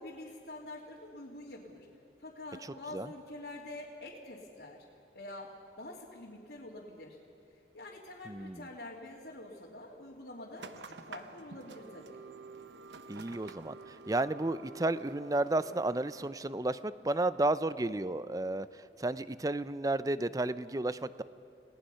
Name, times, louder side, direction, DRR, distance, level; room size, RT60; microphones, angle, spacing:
voice 1, 0.0-1.9 2.2-4.8 5.1-5.5 5.8-7.2 7.5-12.2, left 2 dB, 70° left, -5 dB, 2.8 m, -46 dB
voice 2, 8.3-8.7 13.1-18.7 19.0-21.2, right 2 dB, 20° right, 15 dB, 0.5 m, -32 dB
sound 1, 10.6-16.3, right 4 dB, 90° right, 1.0 m, -50 dB
29.5 x 18.5 x 5.7 m, 2.8 s
head